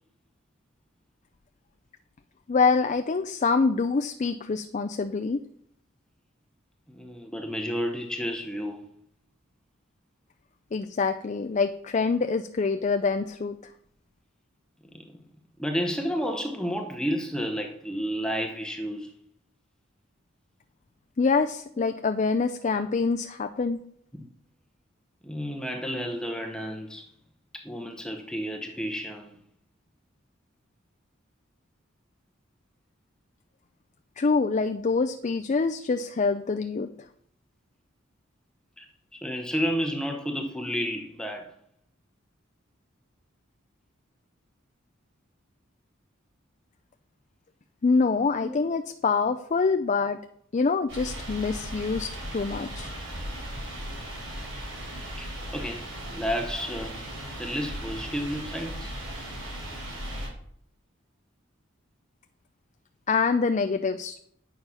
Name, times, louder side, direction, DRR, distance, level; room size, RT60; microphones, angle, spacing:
voice 1, 2.5-5.4 10.7-13.6 21.2-23.8 34.2-36.9 47.8-50.2 50.5-52.9 63.1-64.2, left 4 dB, 35° left, 0.4 m, -25 dB
voice 2, 6.9-8.9 14.9-15.2 15.6-19.1 21.8-21.9 25.2-27.1 27.5-29.4 38.8-41.5 48.4-48.6 55.2-57.0 57.4-59.0, equal, 5° left, 0.8 m, -31 dB
sound 1, 50.9-60.3, right 1 dB, 75° right, 3.8 m, -37 dB
9.3 x 6.8 x 5.7 m
head